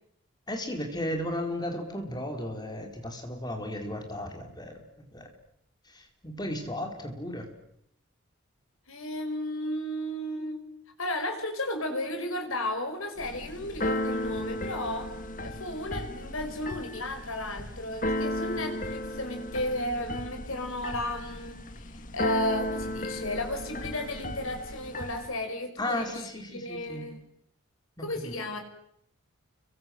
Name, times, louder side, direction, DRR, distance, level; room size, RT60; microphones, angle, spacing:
voice 1, 0.5-4.8 5.1-5.3 5.9-7.5 25.8-27.0 28.0-28.4, left 1 dB, 20° left, 4 dB, 4.6 m, -35 dB
voice 2, 8.9-10.6 11.0-15.1 15.4-27.2 28.0-28.6, left 1 dB, 85° left, 5 dB, 5.6 m, -34 dB
Keyboard (musical), 13.2-25.3, left 1 dB, 40° left, 1.9 m, -35 dB
29.5 x 24.0 x 7.9 m, 0.73 s
head